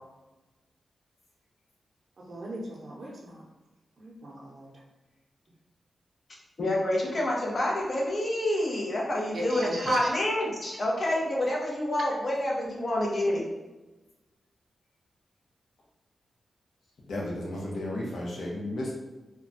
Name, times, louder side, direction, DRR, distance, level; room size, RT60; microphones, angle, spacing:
voice 1, 2.3-3.4 4.0-4.7 9.3-10.1, right 1 dB, 55° right, -2 dB, 0.6 m, -33 dB
voice 2, 6.6-13.4, left 1 dB, 40° left, -2 dB, 0.7 m, -28 dB
voice 3, 17.1-18.9, left 1 dB, 75° left, -3 dB, 0.8 m, -33 dB
2.3 x 2.2 x 3.8 m, 1.1 s
wide cardioid pair, 145°, 0 cm